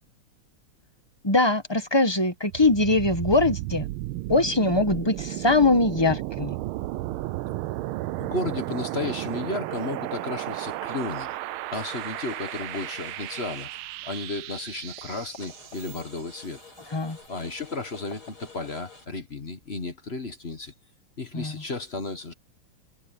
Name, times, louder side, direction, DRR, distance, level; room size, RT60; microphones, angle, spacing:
voice 1, 1.2-3.9 4.3-6.6 16.9-17.2 21.3-21.5, left 2 dB, 15° left, 1.0 m, -22 dB
sound 1, 2.5-16.3, right 16 dB, 85° right, 1.5 m, -34 dB
voice 2, 8.2-11.4 11.7-13.7 14.0-16.6 17.3-20.7 21.2-22.3, left 3 dB, 35° left, 1.5 m, -33 dB
sound 2, 11.8-14.1 14.4-14.5 15.0-15.1 15.4-19.1, left 3 dB, 75° left, 9.0 m, -50 dB
sound 3, 11.9-13.3 14.9-16.0 17.6-19.2, left 4 dB, 50° left, 3.7 m, -47 dB
omnidirectional pair, 2.3 m